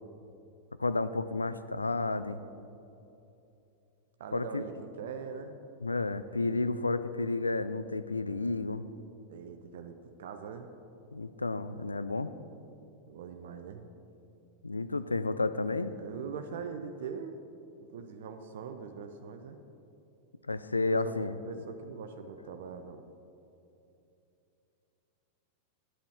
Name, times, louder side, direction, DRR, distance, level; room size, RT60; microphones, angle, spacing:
voice 1, 0.8-2.4 4.3-4.6 5.8-8.8 11.1-12.3 14.6-15.9 20.5-21.3, left 3 dB, 80° left, 13 dB, 0.3 m, -31 dB
voice 2, 4.2-5.5 9.3-10.7 13.0-13.8 15.9-17.4 17.9-19.6 20.9-23.0, right 6 dB, 60° right, 7 dB, 0.5 m, -42 dB
10.0 x 8.9 x 3.5 m, 2.8 s
figure-of-eight pair, 90°, 0 cm